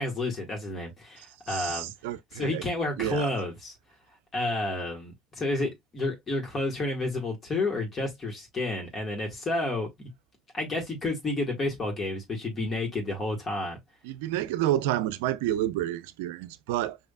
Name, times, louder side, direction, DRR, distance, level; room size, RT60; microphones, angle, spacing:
voice 1, 0.0-1.9 2.3-3.7 4.3-10.1 10.5-13.8, left 2 dB, 35° left, 2.0 m, -30 dB
voice 2, 1.5-2.6 3.0-3.3 14.0-17.0, right 13 dB, 75° right, 0.4 m, -29 dB
5.2 x 3.0 x 2.4 m
hypercardioid pair, 75°, 0 cm